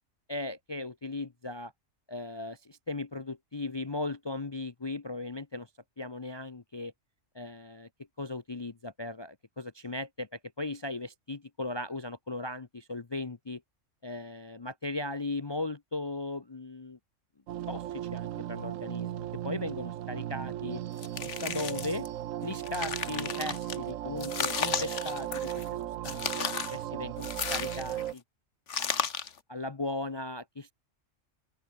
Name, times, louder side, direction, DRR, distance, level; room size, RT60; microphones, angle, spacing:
voice 1, 0.3-1.7 2.1-5.7 6.0-6.9 7.3-7.9 8.2-13.6 14.0-17.0 17.7-20.8 21.2-22.1 22.4-25.8 26.0-28.2 28.7-29.1 29.5-30.7, left 2 dB, 30° left, 0.6 m, -37 dB
sound 1, 17.5-28.1, right 12 dB, 80° right, 1.1 m, -36 dB
sound 2, 21.0-22.1 22.5-23.8 24.2-25.7 26.0-26.8 27.2-28.1 28.7-29.4, left 6 dB, 65° left, 1.6 m, -34 dB
open air
omnidirectional pair, 1.3 m